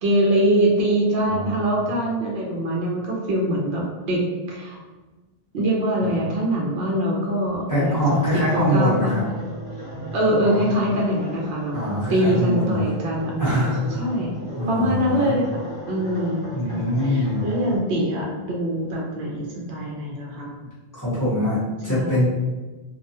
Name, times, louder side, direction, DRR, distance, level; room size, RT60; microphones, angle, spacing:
voice 1, 0.0-4.8 5.5-9.2 10.1-11.8 12.1-13.7 14.0-14.3 14.7-20.5 21.9-22.2, right 1 dB, 70° right, -2 dB, 0.8 m, -23 dB
voice 2, 1.3-1.8 6.0-6.1 7.7-9.2 10.4-10.6 11.7-12.9 13.4-14.1 14.5-15.3 16.5-17.5 20.9-22.3, equal, 20° left, -11 dB, 1.0 m, -23 dB
sound 1, 7.7-17.8, equal, 20° right, 1.0 m, -36 dB
2.3 x 2.1 x 2.7 m, 1.2 s
omnidirectional pair, 1.1 m